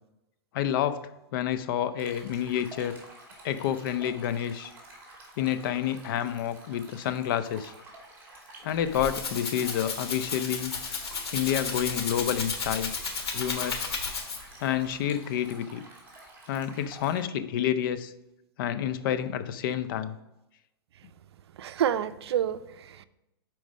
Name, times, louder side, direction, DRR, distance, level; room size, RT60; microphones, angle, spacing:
voice 1, 0.5-1.0 1.3-3.0 3.4-4.7 5.4-7.7 8.6-10.7 11.3-12.9 13.3-13.8 14.6-15.8 16.5-18.1 18.6-20.2, left 10 dB, 55° left, 12 dB, 0.5 m, -29 dB
Stream, 2.0-17.2, right 2 dB, 15° right, 2.4 m, -50 dB
Rattle (instrument), 8.7-14.6, left 4 dB, 75° left, 1.5 m, -33 dB
voice 2, 21.6-23.1, right 10 dB, 80° right, 14 dB, 0.4 m, -29 dB
6.1 x 4.5 x 5.3 m, 0.93 s
hypercardioid pair, 135°, 14 cm